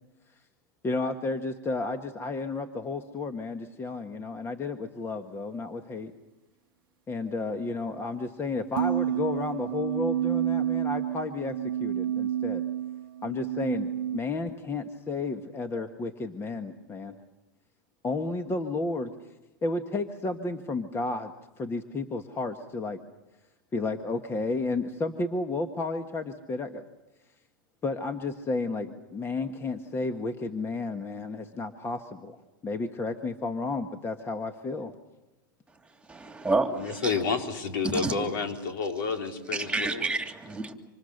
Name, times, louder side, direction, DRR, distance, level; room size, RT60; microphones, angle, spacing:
voice 1, 0.8-6.1 7.1-12.6 13.2-17.2 18.0-19.1 19.6-21.3 21.6-23.0 23.7-26.8 27.8-32.4 32.6-35.0, left 3 dB, 20° left, 7 dB, 1.6 m, -32 dB
sound 1, 8.8-14.2, right 11 dB, 85° right, 0.8 m, -29 dB
voice 2, 36.1-37.2 37.8-38.1 39.5-40.7, right 3 dB, 10° right, 5 dB, 2.9 m, -29 dB
voice 3, 36.8-40.0, left 5 dB, 75° left, 4 dB, 4.2 m, -30 dB
27.0 x 26.5 x 6.7 m, 1.0 s
supercardioid pair, 120°, 11 cm